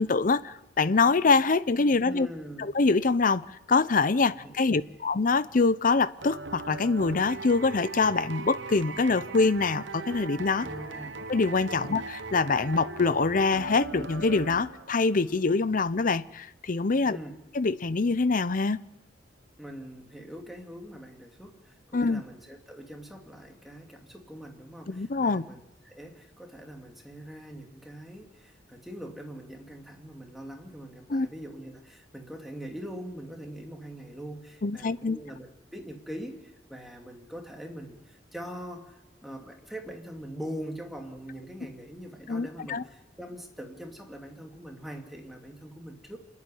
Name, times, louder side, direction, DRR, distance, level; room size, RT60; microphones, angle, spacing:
voice 1, 0.0-2.3 2.6-3.4 3.7-10.7 11.3-17.2 17.5-18.8 21.9-22.2 24.9-25.4 31.1-31.3 34.6-35.2 42.3-42.8, left 4 dB, 45° left, 16 dB, 0.6 m, -25 dB
voice 2, 2.0-2.7 4.3-4.9 10.6-11.2 11.8-12.0 17.1-17.4 19.6-46.2, equal, ahead, 1 dB, 2.7 m, -42 dB
sound 1, 6.2-15.1, right 4 dB, 75° right, 1.0 m, -39 dB
27.5 x 11.0 x 10.0 m, 1.0 s
head